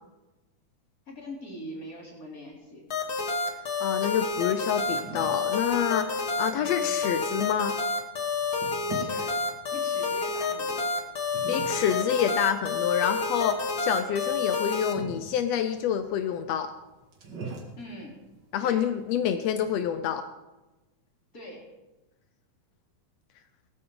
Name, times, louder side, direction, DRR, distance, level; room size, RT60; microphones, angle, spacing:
voice 1, 1.1-2.9 6.5-6.9 8.8-9.4 9.7-10.9 17.8-18.2 18.6-18.9 21.3-21.7, equal, 25° left, -2 dB, 3.6 m, -43 dB
sound 1, 2.9-14.9, left 4 dB, 50° left, 1.2 m, -29 dB
voice 2, 3.8-7.8 11.5-16.7 18.5-20.2, left 9 dB, 80° left, 9 dB, 1.4 m, -27 dB
sound 2, 4.1-19.9, right 4 dB, 35° right, 2.4 m, -46 dB
18.5 x 14.0 x 3.9 m, 1.1 s
omnidirectional pair, 3.8 m